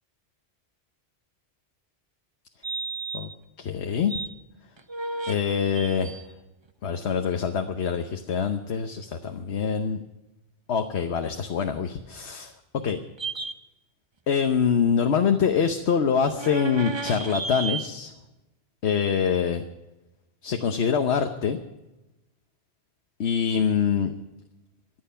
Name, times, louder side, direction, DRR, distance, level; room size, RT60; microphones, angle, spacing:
sound 1, 2.6-3.3 3.8-4.3 4.8-5.4 5.7-6.3 13.2-13.5 16.3-17.8, right 4 dB, 30° right, 0.7 m, -33 dB
voice 1, 3.6-4.2 5.3-6.2 6.8-10.0 10.7-12.5 12.8-13.0 14.3-18.1 18.8-19.6 20.4-21.6 23.2-24.1, left 7 dB, 80° left, 6 dB, 1.2 m, -25 dB
24.5 x 9.4 x 5.6 m, 1.0 s
omnidirectional pair, 1.1 m